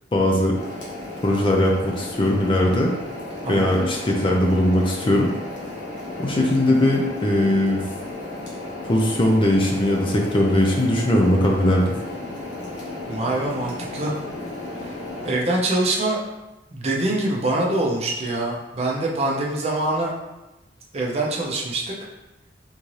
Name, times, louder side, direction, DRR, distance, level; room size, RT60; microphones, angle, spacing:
voice 1, 0.1-0.6 1.2-2.9 3.5-5.3 6.2-7.8 8.8-11.9, left 1 dB, 30° left, 0 dB, 0.4 m, -19 dB
sound 1, 0.5-15.3, left 2 dB, 90° left, 1.2 m, -34 dB
voice 2, 13.1-14.2 14.8-15.0 15.2-16.3 16.7-20.2 20.9-21.8, right 2 dB, 35° right, -2 dB, 0.6 m, -24 dB
3.7 x 2.7 x 3.1 m, 1.0 s
head